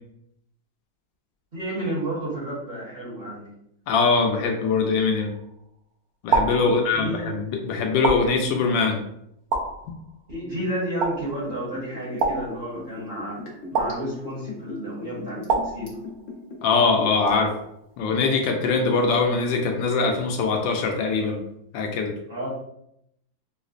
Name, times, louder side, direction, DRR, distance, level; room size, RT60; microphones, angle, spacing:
voice 1, 1.5-3.5 6.6-7.3 10.3-13.4 13.7-15.9 22.3-22.5, right 1 dB, 35° right, -8 dB, 1.2 m, -31 dB
voice 2, 3.9-5.3 6.2-9.0 16.6-17.5 18.0-21.4 21.7-22.1, left 4 dB, 80° left, 3 dB, 1.3 m, -22 dB
sound 1, 5.2-5.7 6.3-7.3 8.0-8.9 9.5-10.4 11.0-11.7 12.2-13.1 13.7-14.6 15.5-16.5 17.3-17.9, right 4 dB, 70° right, 0.9 m, -28 dB
Liquid, 11.1-17.3 17.6-17.7, left 3 dB, 50° left, 1.1 m, -38 dB
4.7 x 2.1 x 2.4 m, 0.75 s
omnidirectional pair, 2.0 m